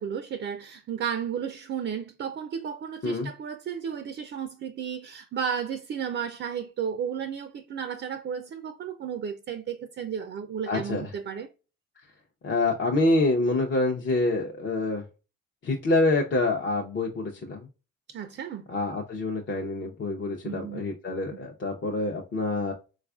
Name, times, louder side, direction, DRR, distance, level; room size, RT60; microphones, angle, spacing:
voice 1, 0.0-11.5 18.1-18.6 20.4-20.8 21.3-21.5, right 7 dB, 40° right, 0.4 m, -33 dB
voice 2, 10.7-11.1 12.4-15.0 15.6-17.7 18.7-22.7, left 2 dB, 40° left, 0.6 m, -26 dB
4.1 x 2.4 x 2.3 m
cardioid pair, 90°, 30 cm